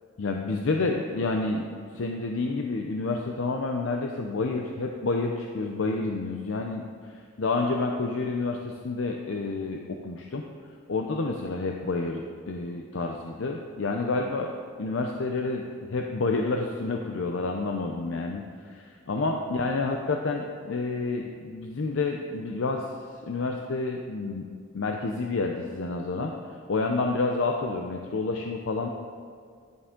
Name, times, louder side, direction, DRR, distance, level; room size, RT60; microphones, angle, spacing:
voice 1, 0.2-10.4 10.9-14.5 14.8-22.9 23.2-24.5 24.7-26.3 26.7-28.9, left 3 dB, 90° left, 2 dB, 0.6 m, -29 dB
11.0 x 6.9 x 3.7 m, 2.1 s
head